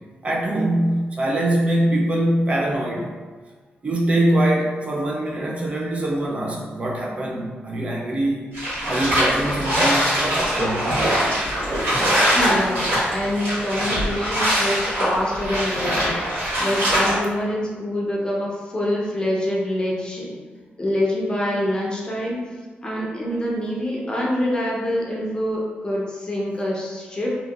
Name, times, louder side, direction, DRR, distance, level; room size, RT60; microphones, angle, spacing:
voice 1, 0.2-3.1 3.8-8.4 8.9-10.9, right 1 dB, 35° right, -2 dB, 0.4 m, -23 dB
sound 1, 8.5-17.1, equal, 90° right, 1.4 m, -22 dB
voice 2, 12.4-16.2 16.6-20.4 20.8-22.4 22.8-27.4, left 1 dB, 25° left, -3 dB, 0.6 m, -25 dB
2.8 x 2.7 x 2.3 m, 1.4 s
cardioid pair, 110°, 4 cm